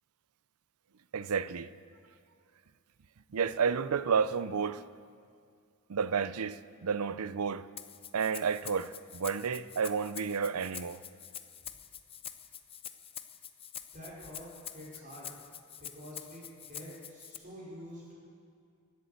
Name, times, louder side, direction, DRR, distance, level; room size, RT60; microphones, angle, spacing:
voice 1, 1.1-1.7 3.3-4.8 5.9-7.7 8.1-11.0, right 6 dB, 80° right, 0.5 m, -31 dB
Rattle (instrument), 7.8-17.4, left 9 dB, 25° left, 0.7 m, -46 dB
voice 2, 13.9-15.3 15.8-18.2, equal, 40° right, 5.0 m, -47 dB
21.5 x 8.5 x 8.0 m
head